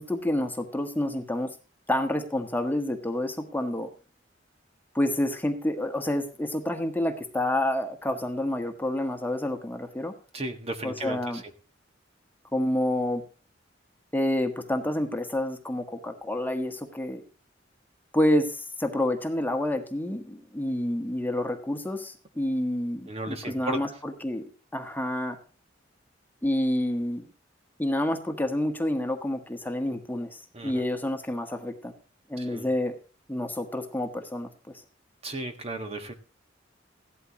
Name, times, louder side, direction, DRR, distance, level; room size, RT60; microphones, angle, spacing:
voice 1, 0.0-1.5 1.9-3.9 4.9-10.1 10.8-11.4 12.5-13.2 14.1-17.2 18.1-24.4 24.7-25.4 26.4-27.3 27.8-31.9 32.3-33.0 33.3-34.5, left 1 dB, 10° left, 4 dB, 1.4 m, -28 dB
voice 2, 10.3-11.4 23.1-23.8 30.5-30.8 32.4-32.7 35.2-36.1, right 2 dB, 35° right, 6 dB, 1.4 m, -35 dB
16.0 x 12.5 x 3.0 m, 0.36 s
head